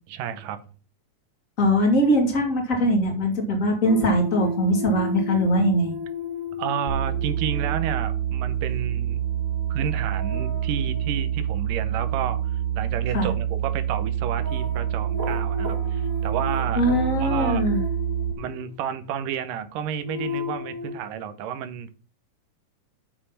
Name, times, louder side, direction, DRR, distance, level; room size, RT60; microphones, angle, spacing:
voice 1, 0.1-0.6 6.6-9.2 9.7-16.8 17.2-17.6 18.4-21.9, right 8 dB, 80° right, 10 dB, 2.5 m, -31 dB
voice 2, 1.6-5.9 13.1-13.3 16.8-17.8, equal, 25° left, 1 dB, 2.6 m, -21 dB
sound 1, 3.8-19.0 19.6-21.0, left 2 dB, 45° right, 1.1 m, -35 dB
sound 2, 6.9-18.3, right 10 dB, 10° right, 1.6 m, -27 dB
7.5 x 6.7 x 5.7 m, 0.39 s
omnidirectional pair, 3.8 m